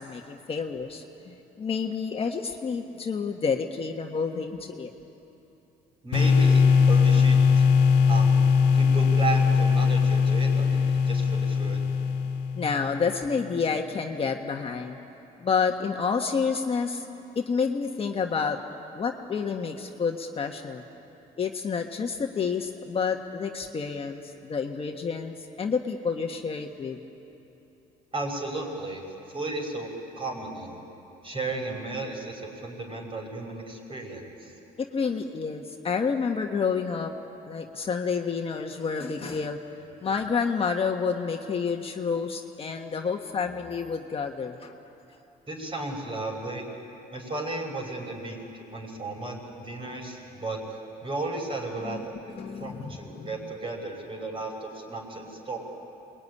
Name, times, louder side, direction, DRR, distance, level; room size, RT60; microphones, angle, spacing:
voice 1, 0.0-4.9 12.5-15.0 15.4-17.1 17.3-18.6 18.9-20.8 21.4-27.0 34.8-37.1 37.5-39.6 40.0-44.8 51.8-52.0 52.3-53.3, left 5 dB, 35° left, 3 dB, 1.5 m, -29 dB
voice 2, 6.0-7.6 8.1-8.4 8.7-11.8 28.1-30.8 31.2-34.5 45.5-46.7 47.1-50.6 51.0-55.6, right 2 dB, 30° right, 2 dB, 5.9 m, -34 dB
sound 1, 6.1-12.9, left 5 dB, 90° left, 1.8 m, -20 dB
27.0 x 22.0 x 9.9 m, 3.0 s
cardioid pair, 110°, 17 cm